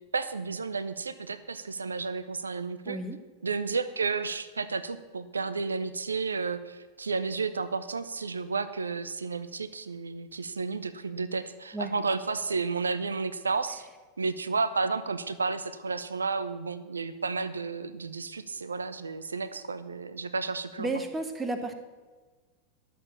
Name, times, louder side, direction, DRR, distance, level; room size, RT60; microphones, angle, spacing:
voice 1, 0.1-3.0 3.4-13.9 14.2-20.9, right 4 dB, 75° right, 13 dB, 0.6 m, -32 dB
voice 2, 2.8-3.2 11.7-11.9 20.8-21.7, right 2 dB, 10° right, 6 dB, 1.3 m, -32 dB
11.5 x 7.7 x 6.8 m, 1.4 s
figure-of-eight pair, 90°, 0 cm